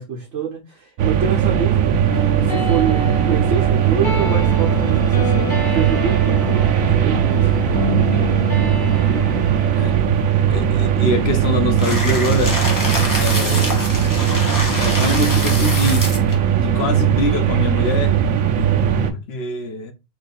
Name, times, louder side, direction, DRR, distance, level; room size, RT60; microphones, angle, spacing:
voice 1, 0.0-1.9 2.4-7.8 18.7-19.1, right 6 dB, 60° right, 1.2 m, -27 dB
sound 1, 1.0-19.1, right 9 dB, 80° right, 1.0 m, -18 dB
sound 2, 2.0-10.0, equal, 40° left, 1.6 m, -28 dB
voice 2, 10.5-12.6 13.2-13.8 14.8-16.1 16.5-18.2 19.0-19.9, left 2 dB, 60° left, 0.8 m, -24 dB
sound 3, 11.8-16.4, left 1 dB, 15° left, 0.8 m, -25 dB
3.1 x 2.8 x 4.0 m
omnidirectional pair, 1.4 m